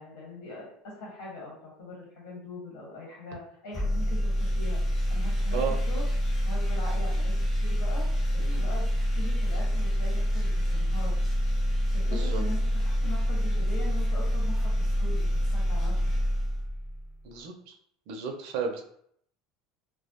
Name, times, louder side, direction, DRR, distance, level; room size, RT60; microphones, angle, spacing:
voice 1, 0.0-4.8 5.1-5.6 5.9-6.0 6.4-8.1 8.3-8.9 9.1-11.1 11.9-16.0, left 1 dB, 85° left, -4 dB, 1.4 m, -41 dB
sound 1, 3.7-17.1, equal, 25° left, 0.7 m, -27 dB
voice 2, 12.1-12.4 17.2-17.8 18.1-18.8, right 6 dB, 70° right, 4 dB, 0.4 m, -33 dB
2.1 x 2.0 x 2.8 m, 0.67 s
supercardioid pair, 120°, 0 cm